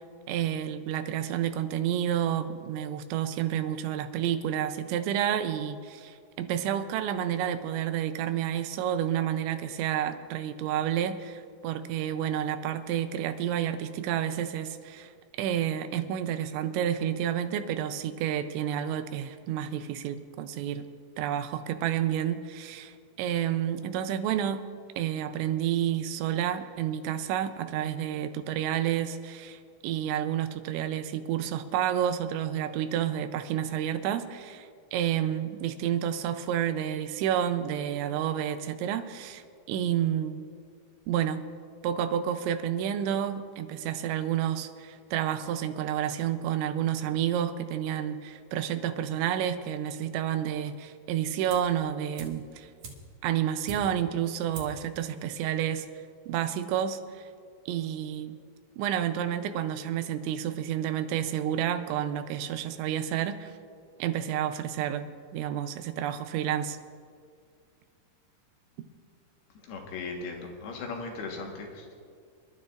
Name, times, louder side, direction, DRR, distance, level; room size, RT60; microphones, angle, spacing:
voice 1, 0.3-15.1 15.4-20.8 21.2-24.7 25.0-39.4 39.7-40.5 41.1-41.4 41.8-52.7 53.2-55.9 56.3-57.2 57.7-58.4 58.8-63.5 64.0-66.8, right 10 dB, 90° right, 10 dB, 3.0 m, -30 dB
sound 1, 51.5-51.8 52.1-54.1 54.5-54.9 55.2-55.3, right 3 dB, 60° right, 2.1 m, -44 dB
voice 2, 69.6-71.9, left 4 dB, 70° left, 1 dB, 3.1 m, -38 dB
27.5 x 12.0 x 2.5 m, 2.2 s
omnidirectional pair, 5.1 m